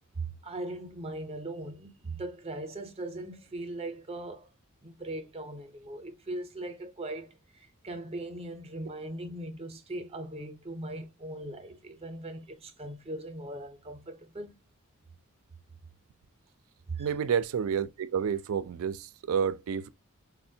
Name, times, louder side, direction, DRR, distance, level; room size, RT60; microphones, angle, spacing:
voice 1, 0.2-4.5 4.8-14.5 16.9-17.1, right 2 dB, 30° right, 0.6 m, -39 dB
voice 2, 17.0-19.9, right 7 dB, 75° right, 0.3 m, -29 dB
4.1 x 2.1 x 2.6 m
head